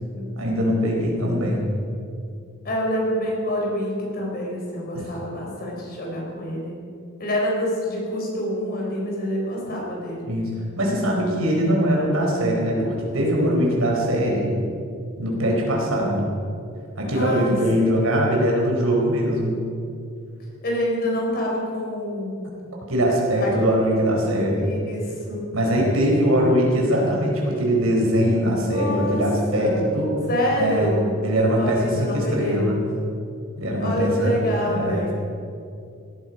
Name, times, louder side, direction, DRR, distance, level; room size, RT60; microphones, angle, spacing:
voice 1, 0.4-1.7 4.9-5.1 10.3-14.5 15.2-16.3 17.0-19.6 22.9-24.7 25.5-30.1 30.6-30.9 31.2-32.8 33.6-35.1, equal, 85° right, -1 dB, 4.3 m, -22 dB
voice 2, 2.6-6.7 7.2-10.3 17.1-18.2 20.6-22.5 23.4-23.6 24.6-25.4 28.6-29.2 29.5-29.9 30.3-31.1 31.5-32.8 33.8-35.1, equal, 50° left, -2 dB, 4.5 m, -27 dB
17.0 x 13.5 x 5.4 m, 2.4 s
head